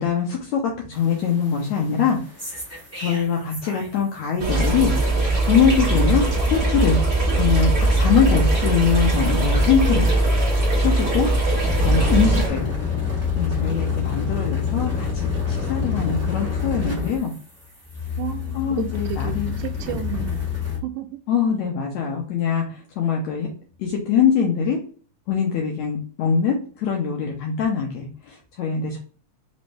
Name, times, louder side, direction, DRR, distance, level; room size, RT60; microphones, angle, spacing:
voice 1, 0.0-2.2 3.0-4.9 5.4-7.0 7.3-10.1 10.8-11.3 11.8-12.6 13.4-17.3 18.6-19.5 21.3-23.5 23.8-24.8 25.3-29.0, left 6 dB, 75° left, 1.8 m, -23 dB
sound 1, 0.9-4.1 4.4-20.8, left 4 dB, 10° right, 0.6 m, -28 dB
sound 2, 4.4-12.5, right 2 dB, 30° right, 1.7 m, -20 dB
voice 2, 12.1-12.7 18.2-20.5 20.8-21.2, right 12 dB, 85° right, 2.1 m, -33 dB
5.2 x 2.7 x 3.2 m
omnidirectional pair, 3.7 m